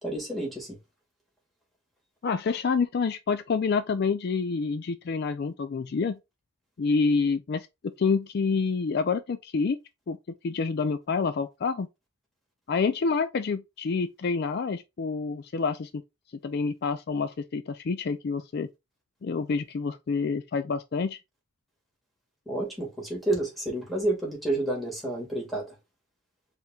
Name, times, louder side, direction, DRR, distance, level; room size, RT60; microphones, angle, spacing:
voice 1, 0.0-0.8 22.5-25.7, right 1 dB, ahead, 2.0 m, -30 dB
voice 2, 2.2-6.2 6.8-7.7 8.0-9.8 10.1-10.2 10.4-11.9 12.7-16.0 16.4-18.7 19.2-21.2, left 4 dB, 50° left, 0.4 m, -27 dB
4.5 x 3.5 x 2.4 m
head